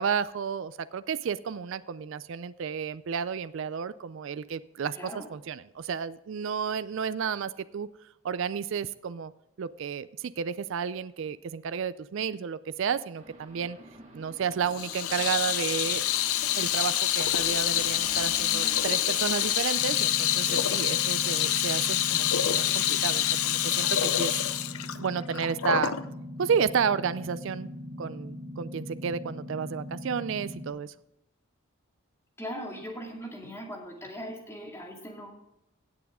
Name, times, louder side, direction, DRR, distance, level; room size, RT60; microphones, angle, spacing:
voice 1, 0.0-7.9 8.2-9.3 9.6-13.8 14.1-16.0 16.5-24.4 25.0-25.9 26.4-27.7 28.0-30.9, right 6 dB, 60° right, 15 dB, 0.3 m, -31 dB
voice 2, 4.9-5.3 32.4-35.3, equal, 10° left, 0 dB, 2.1 m, -39 dB
sound 1, 13.1-19.6, right 1 dB, 30° right, 2.3 m, -47 dB
Water tap faucet / Sink (filling or washing), 14.7-26.0, left 11 dB, 80° left, 0.6 m, -27 dB
sound 2, 19.7-30.7, left 1 dB, 15° right, 2.8 m, -41 dB
17.0 x 7.1 x 3.6 m, 0.87 s
head